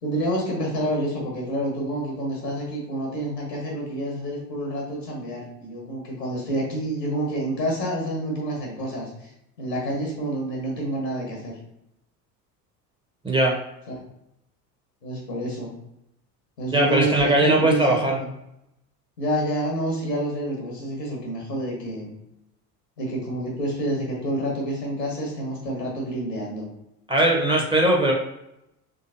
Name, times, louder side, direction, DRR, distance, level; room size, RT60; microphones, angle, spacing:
voice 1, 0.0-9.3 9.6-11.5 13.9-14.0 15.0-15.7 16.6-18.3 19.2-22.1 23.0-26.7, right 1 dB, 90° left, -2 dB, 1.4 m, -28 dB
voice 2, 13.2-13.5 16.7-18.2 27.1-28.1, right 1 dB, 10° right, -1 dB, 1.0 m, -20 dB
3.8 x 3.2 x 2.7 m, 0.84 s
figure-of-eight pair, 70°, 48 cm